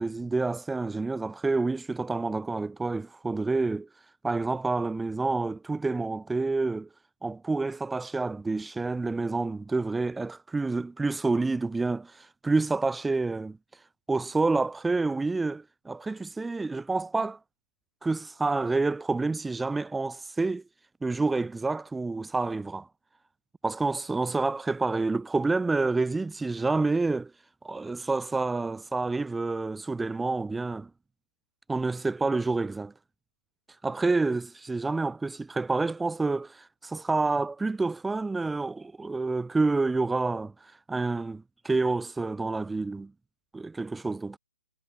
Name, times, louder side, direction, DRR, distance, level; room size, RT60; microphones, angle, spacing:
voice 1, 0.0-3.9 4.2-6.9 7.2-13.6 14.1-17.4 18.0-20.6 21.0-22.9 23.6-27.3 27.6-30.9 31.7-32.9 33.8-43.1 43.5-44.4, right 3 dB, 5° right, 7.1 m, -28 dB
figure-of-eight pair, 135°, 0 cm